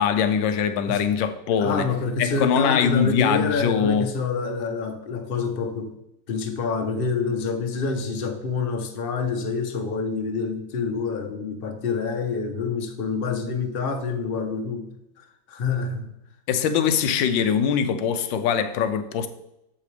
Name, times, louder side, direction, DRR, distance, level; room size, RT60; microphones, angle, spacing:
voice 1, 0.0-1.9 2.2-4.1 16.5-19.3, left 7 dB, 85° left, 1.4 m, -22 dB
voice 2, 1.6-5.9 6.3-14.9 15.2-16.1, left 4 dB, 40° left, 0.8 m, -27 dB
8.5 x 7.6 x 3.3 m
omnidirectional pair, 2.0 m